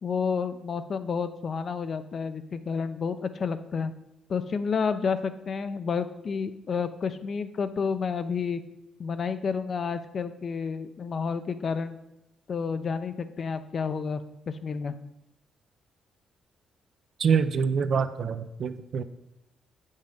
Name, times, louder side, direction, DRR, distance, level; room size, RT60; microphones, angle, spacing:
voice 1, 0.0-3.9 4.3-8.6 9.0-12.0 12.5-14.9, left 5 dB, 50° left, 10 dB, 0.6 m, -30 dB
voice 2, 17.2-19.0, right 6 dB, 55° right, 11 dB, 0.5 m, -25 dB
8.0 x 5.5 x 5.1 m, 0.87 s
cardioid pair, 90°, 0 cm